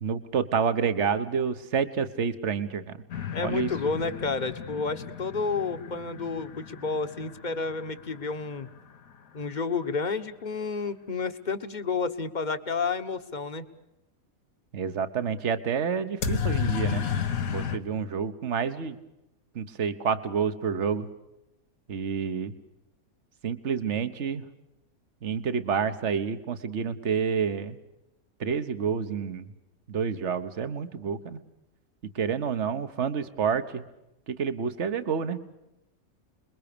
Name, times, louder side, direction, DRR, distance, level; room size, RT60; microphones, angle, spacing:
voice 1, 0.0-3.0 3.4-3.7 14.7-17.1 17.5-19.0 19.5-21.1 21.9-22.5 23.4-24.5 25.2-27.8 28.4-29.5 29.9-31.4 32.1-33.8 34.3-35.4, right 6 dB, 55° right, 11 dB, 1.6 m, -28 dB
sound 1, 3.1-8.9 16.2-17.8, left 8 dB, 80° left, 1.7 m, -33 dB
voice 2, 3.3-8.7 9.3-13.6, left 4 dB, 35° left, 9 dB, 1.3 m, -30 dB
28.0 x 22.0 x 6.9 m, 0.89 s
omnidirectional pair, 1.5 m